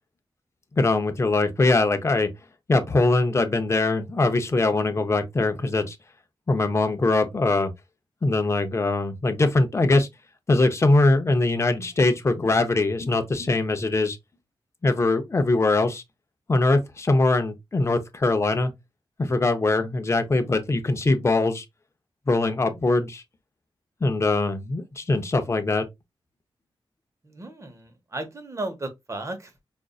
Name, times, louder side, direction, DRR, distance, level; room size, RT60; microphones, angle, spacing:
voice 1, 0.8-2.3 2.7-6.0 6.5-7.7 8.2-10.1 10.5-14.2 14.8-16.0 16.5-18.7 19.2-21.6 22.3-23.2 24.0-25.8, left 2 dB, 30° left, 0.6 m, -22 dB
voice 2, 27.2-29.6, right 2 dB, 30° right, 0.9 m, -35 dB
5.2 x 2.5 x 2.3 m
wide cardioid pair, 140°, 9 cm